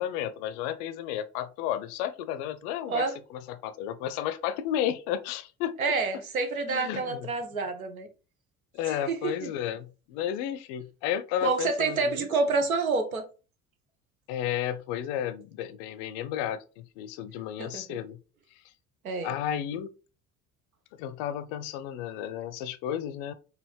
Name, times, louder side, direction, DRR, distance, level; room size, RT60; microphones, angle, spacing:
voice 1, 0.0-5.8 6.7-7.3 8.7-12.3 14.3-18.2 19.2-19.9 21.0-23.3, left 10 dB, 50° left, 0.5 m, -32 dB
voice 2, 5.8-8.1 9.1-9.5 11.4-13.2 17.6-18.0 19.0-19.3, right 4 dB, 80° right, 0.7 m, -28 dB
4.8 x 2.5 x 3.1 m
figure-of-eight pair, 60°, 42 cm